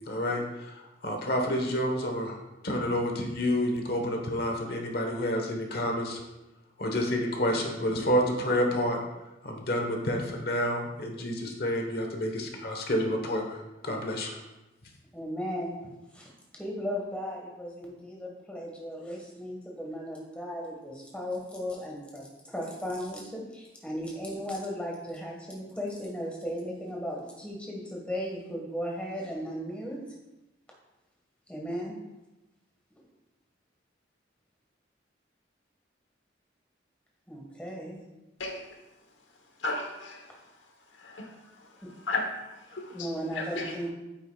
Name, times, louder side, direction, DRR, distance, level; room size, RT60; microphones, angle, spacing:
voice 1, 0.1-2.4 2.6-6.2 6.8-9.0 9.4-13.6 13.8-14.4, equal, 55° left, 2 dB, 1.2 m, -29 dB
voice 2, 15.1-15.8 16.1-30.0 31.5-31.9 37.3-38.0 42.9-43.9, equal, 5° left, -2 dB, 1.5 m, -36 dB
voice 3, 39.6-40.3 41.0-41.3 42.1-43.1 43.3-43.7, left 2 dB, 85° left, 2 dB, 1.1 m, -34 dB
9.0 x 8.1 x 2.4 m, 0.98 s
head